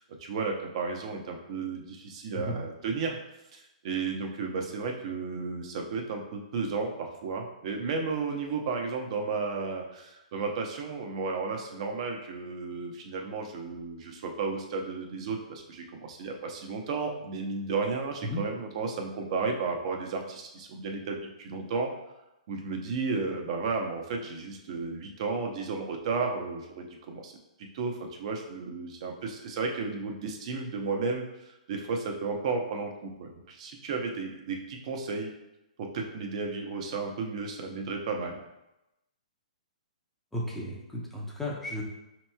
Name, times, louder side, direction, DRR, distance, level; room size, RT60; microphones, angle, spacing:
voice 1, 0.0-3.2 3.5-21.9 22.5-27.3 27.6-35.3 35.8-38.4, right 4 dB, 50° right, 2 dB, 0.7 m, -33 dB
voice 2, 40.3-41.8, left 1 dB, 5° left, -4 dB, 0.6 m, -34 dB
5.2 x 2.9 x 2.2 m, 0.93 s
hypercardioid pair, 140°, 4 cm